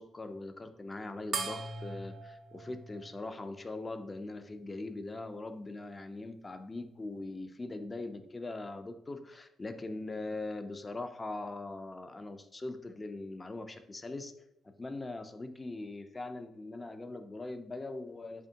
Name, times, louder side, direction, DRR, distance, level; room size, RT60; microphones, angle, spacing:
voice 1, 0.0-14.3 14.8-18.5, left 2 dB, 25° left, 8 dB, 0.3 m, -41 dB
sound 1, 1.3-4.1, right 3 dB, 45° right, 0.4 m, -41 dB
3.6 x 3.3 x 2.7 m, 0.79 s
cardioid pair, 90°, 0 cm